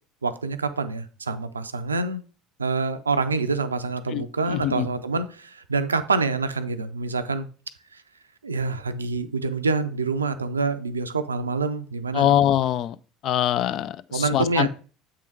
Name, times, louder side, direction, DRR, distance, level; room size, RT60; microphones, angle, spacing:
voice 1, 0.2-2.2 2.6-7.5 7.9-8.0 8.4-12.4 14.1-14.7, right 4 dB, 90° right, 0.4 m, -26 dB
voice 2, 4.1-4.9 12.1-13.0 13.2-14.7, left 11 dB, 50° left, 0.4 m, -23 dB
7.6 x 3.7 x 4.6 m
figure-of-eight pair, 65°, 0 cm